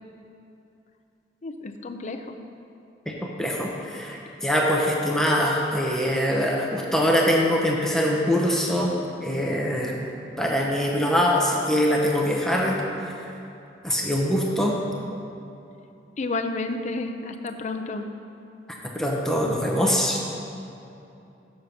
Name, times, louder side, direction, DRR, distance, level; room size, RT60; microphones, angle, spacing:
voice 1, 1.4-2.4 16.2-18.1, left 3 dB, 40° left, 5 dB, 0.5 m, -31 dB
voice 2, 3.1-8.9 9.2-9.9 10.4-12.8 13.0-13.1 13.8-14.8 18.9-20.2, equal, 5° left, -2 dB, 0.8 m, -23 dB
6.8 x 6.6 x 5.7 m, 2.8 s
head